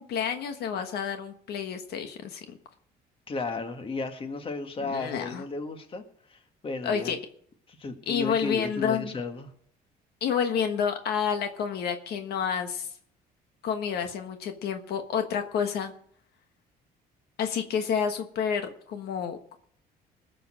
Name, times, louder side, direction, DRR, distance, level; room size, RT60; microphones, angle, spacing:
voice 1, 0.0-2.6 4.8-5.4 6.8-7.2 8.1-9.1 10.2-12.9 13.6-15.9 17.4-19.5, left 7 dB, 70° left, 7 dB, 1.3 m, -29 dB
voice 2, 3.3-6.0 6.3-7.1 7.7-9.5, left 3 dB, 30° left, 6 dB, 1.8 m, -34 dB
20.0 x 6.9 x 6.3 m, 0.63 s
cardioid pair, 110°, 17 cm